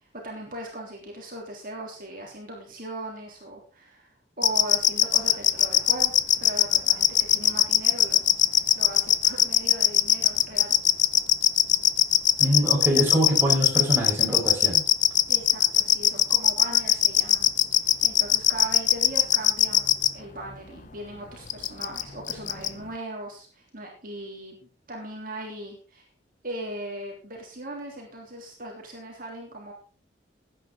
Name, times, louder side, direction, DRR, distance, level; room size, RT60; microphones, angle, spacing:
voice 1, 0.2-4.1 4.4-8.2 8.8-10.8 15.3-17.5 17.8-26.0 26.4-29.7, right 1 dB, 50° right, -1 dB, 3.5 m, -38 dB
sound 1, 4.4-20.1 21.5-22.0 22.3-22.7, left 12 dB, 40° left, 0.7 m, -19 dB
voice 2, 12.4-14.8, equal, 15° right, -3 dB, 4.7 m, -24 dB
16.0 x 9.9 x 3.9 m, 0.37 s
head